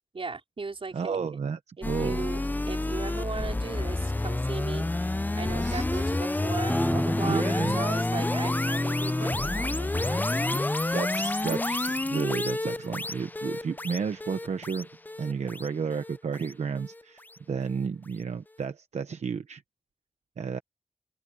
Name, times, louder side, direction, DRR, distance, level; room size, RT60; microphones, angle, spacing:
voice 1, 0.1-1.3 1.8-2.4 2.7-4.9 5.3-10.7, right 4 dB, 55° right, 4.8 m, -37 dB
voice 2, 0.9-1.6 1.9-2.2 5.6-6.2 7.3-7.8 10.6-14.9 15.2-19.6 20.4-20.6, right 6 dB, 90° right, 0.9 m, -32 dB
sound 1, 1.8-17.0, left 2 dB, 15° left, 0.5 m, -29 dB
sound 2, 6.7-12.1, equal, ahead, 1.0 m, -34 dB
open air
wide cardioid pair, 75°, 11 cm